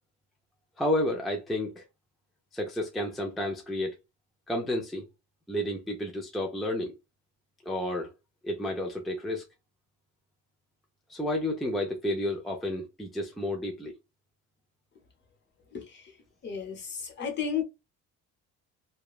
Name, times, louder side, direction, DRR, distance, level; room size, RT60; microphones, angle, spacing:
voice 1, 0.8-1.8 2.5-4.0 4.5-5.1 5.5-6.9 7.7-8.1 8.4-9.4 11.1-13.9, left 1 dB, ahead, 0.4 m, -31 dB
voice 2, 16.4-17.6, left 7 dB, 35° left, 0.9 m, -32 dB
2.9 x 2.2 x 2.3 m
cardioid pair, 120°, 31 cm